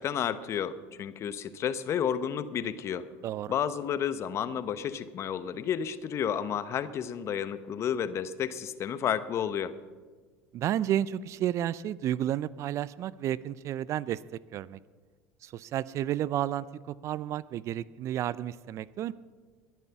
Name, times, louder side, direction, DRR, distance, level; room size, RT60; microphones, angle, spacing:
voice 1, 0.0-3.1 3.5-9.7, left 8 dB, 45° left, 13 dB, 1.0 m, -31 dB
voice 2, 3.2-3.6 10.5-14.2 14.5-14.8 15.4-19.1, right 11 dB, 50° right, 19 dB, 0.5 m, -31 dB
21.0 x 9.3 x 5.9 m, 1.4 s
hypercardioid pair, 80°, 7 cm